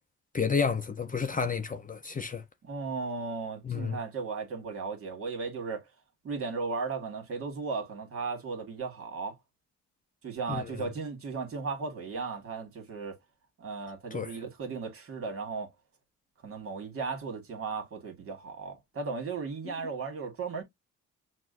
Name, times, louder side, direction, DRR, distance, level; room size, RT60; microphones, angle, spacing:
voice 1, 0.3-2.4 3.6-4.0 10.5-10.6 14.1-14.3, left 5 dB, 25° left, 0.6 m, -30 dB
voice 2, 2.6-5.9 6.2-9.4 10.2-13.2 13.6-15.7 16.4-20.6, right 4 dB, 45° right, 1.8 m, -36 dB
5.9 x 2.3 x 2.5 m
cardioid pair, 90°, 30 cm